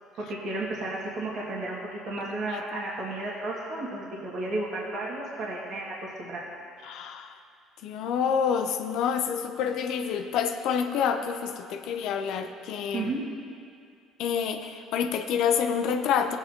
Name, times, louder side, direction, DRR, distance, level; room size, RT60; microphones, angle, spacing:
voice 1, 0.3-6.5 12.9-13.2, right 2 dB, 60° right, -5 dB, 2.0 m, -33 dB
voice 2, 2.3-2.6 6.8-7.4 7.8-13.1 14.2-16.4, left 7 dB, 70° left, 6 dB, 0.6 m, -28 dB
16.0 x 8.1 x 2.9 m, 2.4 s
supercardioid pair, 95°, 0 cm